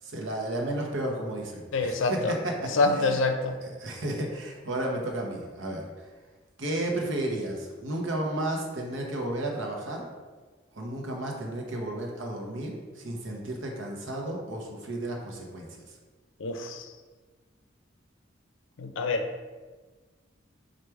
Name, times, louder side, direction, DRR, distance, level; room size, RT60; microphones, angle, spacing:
voice 1, 0.0-3.2 3.6-6.1 6.6-10.1 10.7-15.9, right 1 dB, 85° right, 0 dB, 0.8 m, -33 dB
voice 2, 1.7-2.3 2.7-3.6 16.4-16.9 18.8-19.3, left 3 dB, 85° left, 6 dB, 0.5 m, -26 dB
4.7 x 2.4 x 4.5 m, 1.4 s
head